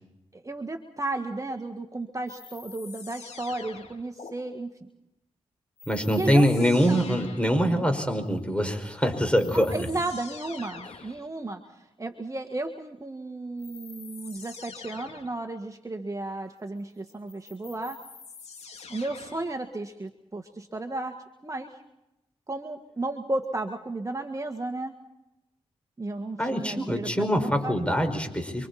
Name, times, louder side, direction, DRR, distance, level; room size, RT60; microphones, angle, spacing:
voice 1, 0.3-4.9 6.1-6.4 6.8-7.0 9.5-18.0 18.9-21.2 21.4-21.8 22.5-25.0 26.0-27.8, right 2 dB, 30° right, 4 dB, 1.8 m, -34 dB
sound 1, 2.3-4.3 5.8-7.6 8.9-9.0 9.3-11.2 13.6-15.4 17.1-19.5, left 5 dB, 70° left, 2.9 m, -45 dB
voice 2, 5.9-9.9 26.4-28.7, equal, 10° left, 6 dB, 5.5 m, -24 dB
28.5 x 24.5 x 4.3 m, 0.90 s
cardioid pair, 50°, 11 cm